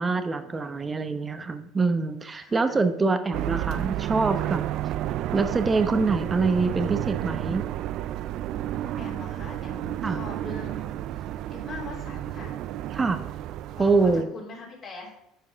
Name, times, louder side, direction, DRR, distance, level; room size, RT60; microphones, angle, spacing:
voice 1, 0.0-4.6 5.3-7.7 10.0-10.2 12.9-13.2 13.8-14.3, right 4 dB, 20° right, 9 dB, 0.9 m, -25 dB
voice 2, 2.3-2.8 8.8-12.6 13.7-15.1, left 3 dB, 45° left, -4 dB, 3.2 m, -42 dB
sound 1, 3.3-14.2, right 13 dB, 60° right, 0.3 m, -31 dB
11.0 x 4.6 x 3.6 m, 0.85 s
supercardioid pair, 105°, 0 cm